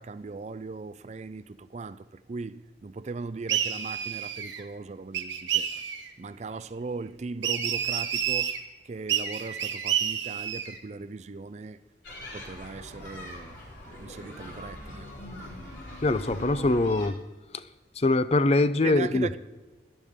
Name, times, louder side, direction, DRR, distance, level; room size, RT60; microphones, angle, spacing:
voice 1, 0.0-5.8 6.2-8.6 8.8-11.8 12.3-13.6 13.8-15.1 18.8-19.4, right 4 dB, 35° right, 0.4 m, -38 dB
sound 1, 3.5-4.6 5.1-6.1 7.4-8.6 9.1-10.8, right 9 dB, 75° right, 1.2 m, -29 dB
sound 2, 12.0-17.1, equal, 70° left, 4.1 m, -41 dB
voice 2, 16.0-17.2 17.5-17.6 18.0-19.3, left 2 dB, 35° left, 0.5 m, -23 dB
17.0 x 12.0 x 3.6 m
head